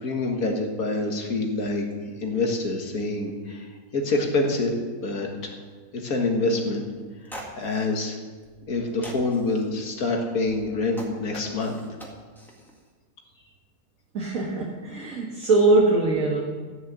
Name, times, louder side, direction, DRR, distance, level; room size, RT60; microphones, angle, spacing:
voice 1, 0.0-3.7 3.9-4.7 5.0-5.6 6.0-6.8 7.3-8.2 8.7-11.8, left 2 dB, 60° left, 2 dB, 2.1 m, -26 dB
sound 1, 6.9-7.0 7.2-7.9 8.4-8.8 9.0-9.6 10.5-12.8, equal, ahead, 1.9 m, -42 dB
voice 2, 14.1-16.4, right 2 dB, 60° right, -2 dB, 1.8 m, -21 dB
14.0 x 6.5 x 8.0 m, 1.5 s
omnidirectional pair, 1.7 m